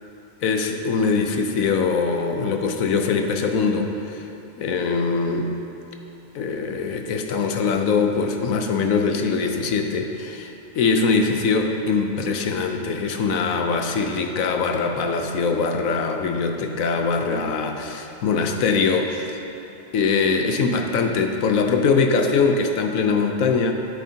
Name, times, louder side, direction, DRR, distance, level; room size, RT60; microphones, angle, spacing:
voice 1, 0.4-4.2 4.6-5.5 6.3-19.4 19.9-23.7, left 4 dB, 90° left, 4 dB, 1.2 m, -22 dB
14.0 x 8.3 x 2.8 m, 2.9 s
omnidirectional pair, 1.4 m